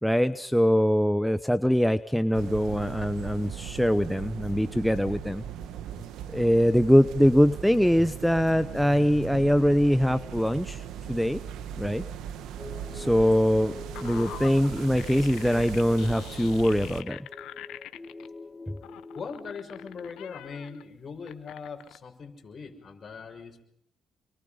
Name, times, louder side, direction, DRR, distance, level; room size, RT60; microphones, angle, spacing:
voice 1, 0.0-5.4 6.3-10.8 11.1-11.4 11.8-12.0 12.9-13.7 14.0-17.2, equal, ahead, 11 dB, 0.9 m, -23 dB
sound 1, 2.3-17.0, right 9 dB, 85° right, 1.7 m, -39 dB
sound 2, 12.6-20.9, left 2 dB, 20° left, 1.5 m, -46 dB
sound 3, 13.2-18.3 18.8-20.8 21.3-22.0, left 13 dB, 85° left, 1.2 m, -44 dB
voice 2, 19.1-23.6, left 5 dB, 45° left, 3 dB, 6.3 m, -40 dB
29.0 x 23.0 x 5.2 m, 0.70 s
cardioid pair, 90°, 0 cm